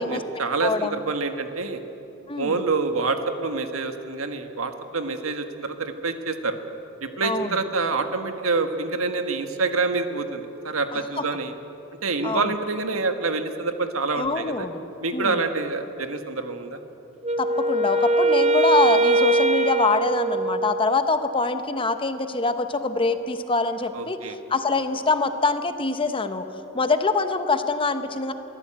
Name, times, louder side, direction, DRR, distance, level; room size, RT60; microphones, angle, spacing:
voice 1, 0.0-1.8 2.4-6.6 7.0-11.5 12.0-14.7 15.0-16.8 23.9-24.4, right 3 dB, 85° right, 7 dB, 1.6 m, -27 dB
voice 2, 0.6-1.0 2.3-2.5 7.2-7.5 11.2-11.3 12.2-12.5 14.1-14.8 15.1-15.4 17.4-24.2 24.5-26.5 26.7-28.3, left 3 dB, 25° left, 9 dB, 1.0 m, -24 dB
Wind instrument woodwind instrument, 17.2-21.1, right 2 dB, 30° right, 0.7 m, -22 dB
22.5 x 15.5 x 8.8 m, 3.0 s
head